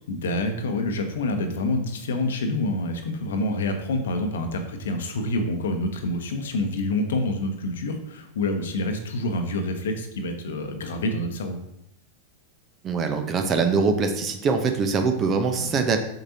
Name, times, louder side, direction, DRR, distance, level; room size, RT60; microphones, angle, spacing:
voice 1, 0.1-11.6 15.6-15.8, left 2 dB, 60° left, 6 dB, 1.0 m, -27 dB
voice 2, 12.8-16.0, right 4 dB, 30° right, 6 dB, 0.9 m, -23 dB
7.8 x 6.6 x 2.8 m, 0.82 s
figure-of-eight pair, 90°, 0 cm